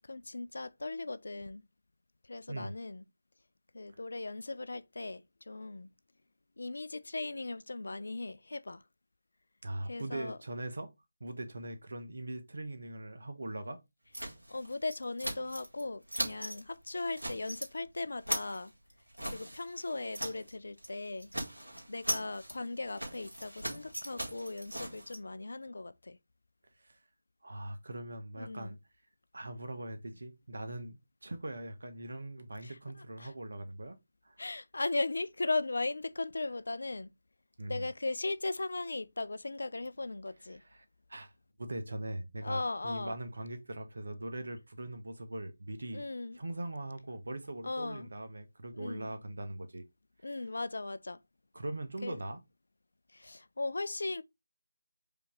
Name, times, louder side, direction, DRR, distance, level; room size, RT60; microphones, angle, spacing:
voice 1, 0.0-1.6 2.3-3.0 3.7-5.9 6.6-8.8 9.9-10.4 14.5-18.7 19.2-21.3 21.9-26.2 28.4-28.8 32.6-33.3 34.4-37.1 37.7-40.6 42.4-43.2 45.9-46.4 47.6-48.1 48.7-49.1 50.2-51.2 52.0-52.2 53.1-54.2, left 2 dB, 60° left, 0.4 m, -38 dB
voice 2, 9.6-10.9 11.2-13.8 26.8-27.0 27.4-28.8 29.3-34.0 34.2-34.4 37.6-37.9 40.6-41.3 41.6-46.0 46.3-49.8 51.5-52.4, right 1 dB, 60° right, 1.1 m, -41 dB
sound 1, 14.1-15.8 16.1-16.6 16.9-17.7 18.0-20.5 20.8-20.9 21.2-25.2, right 1 dB, 85° right, 1.8 m, -39 dB
5.1 x 2.9 x 3.6 m
figure-of-eight pair, 160°, 0 cm